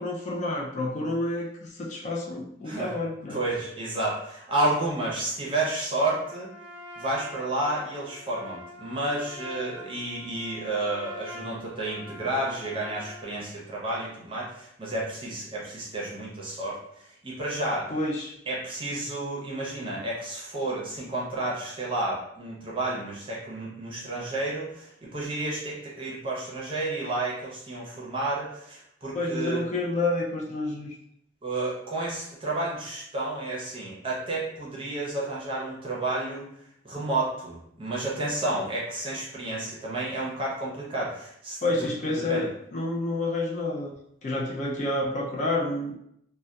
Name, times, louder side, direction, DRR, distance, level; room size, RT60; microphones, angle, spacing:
voice 1, 0.0-3.4 17.9-18.3 29.1-30.9 41.6-43.9 44.2-45.9, left 2 dB, 35° left, -3 dB, 0.3 m, -29 dB
voice 2, 2.6-3.0 3.3-6.5 7.0-17.9 18.5-29.6 31.4-36.5 36.8-41.6 42.3-42.4, right 2 dB, 25° right, -5 dB, 0.6 m, -31 dB
Trumpet, 6.1-13.3, left 1 dB, 75° right, 0.5 m, -44 dB
2.7 x 2.1 x 2.2 m, 0.73 s
head